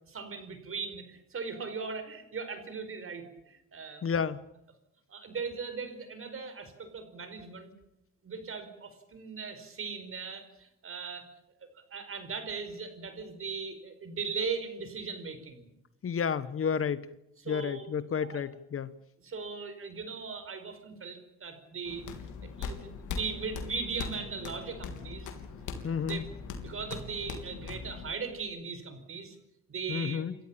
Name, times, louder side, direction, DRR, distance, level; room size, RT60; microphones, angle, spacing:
voice 1, 0.1-4.0 5.1-7.7 8.2-11.3 11.7-15.7 17.4-17.8 18.2-18.4 19.2-22.1 22.4-25.3 25.8-26.2 26.6-29.4 29.7-30.2, right 5 dB, 45° right, 9 dB, 5.0 m, -38 dB
voice 2, 4.0-4.4 16.0-17.1 17.5-18.9 25.8-26.2 29.9-30.3, left 7 dB, 45° left, 15 dB, 1.2 m, -31 dB
sound 1, 21.9-28.1, left 5 dB, 80° left, 3.4 m, -40 dB
28.5 x 14.0 x 8.9 m, 0.83 s
cardioid pair, 90°, 30 cm